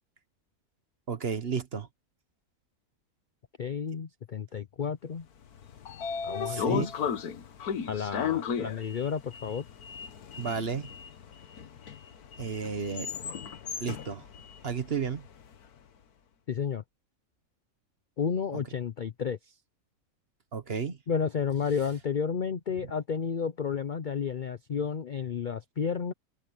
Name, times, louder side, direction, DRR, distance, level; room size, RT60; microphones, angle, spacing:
voice 1, 1.1-1.9 6.5-6.9 10.4-10.9 12.4-13.1 13.8-14.3 14.6-15.3 18.5-18.6 20.5-21.0, right 6 dB, 45° right, 1.3 m, -32 dB
voice 2, 3.6-5.3 6.2-6.9 7.9-9.7 16.5-16.8 18.2-19.4 21.1-26.1, left 6 dB, 50° left, 0.6 m, -31 dB
Sliding door, 5.4-15.6, left 7 dB, 85° left, 1.7 m, -36 dB
omnidirectional pair, 1.6 m